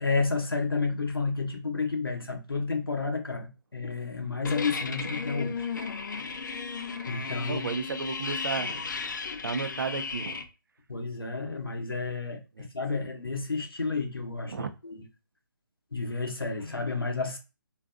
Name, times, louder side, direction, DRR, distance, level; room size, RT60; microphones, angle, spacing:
voice 1, 0.0-5.6 7.1-7.6 10.9-15.0 15.9-17.4, left 4 dB, 90° left, 0.8 m, -31 dB
sound 1, 4.4-10.4, left 5 dB, 55° left, 0.4 m, -34 dB
voice 2, 7.5-8.8 9.4-10.4 12.6-12.7 14.5-14.7, right 5 dB, 65° right, 0.4 m, -33 dB
2.6 x 2.3 x 2.4 m
figure-of-eight pair, 145°, 12 cm